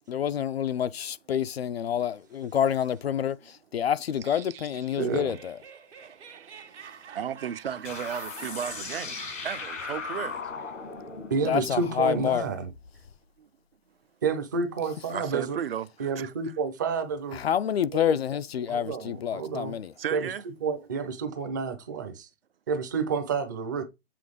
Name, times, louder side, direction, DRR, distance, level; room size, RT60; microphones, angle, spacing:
voice 1, 0.1-5.6 11.4-12.5 17.3-19.9, left 9 dB, 55° left, 0.5 m, -28 dB
voice 2, 4.3-4.6 6.0-10.4 13.4-13.5 15.1-16.3 20.0-20.4, right 8 dB, 50° right, 0.7 m, -35 dB
voice 3, 5.0-5.3 11.3-12.7 14.2-15.6 16.0-17.4 17.9-18.0 18.7-19.8 20.1-20.3 20.6-22.3 22.7-23.8, right 5 dB, 15° right, 0.6 m, -29 dB
Laughter, 5.0-10.5, right 7 dB, 65° right, 1.8 m, -46 dB
sound 1, 7.8-13.1, left 5 dB, 80° left, 1.8 m, -38 dB
7.7 x 3.7 x 5.0 m
hypercardioid pair, 160°, 37 cm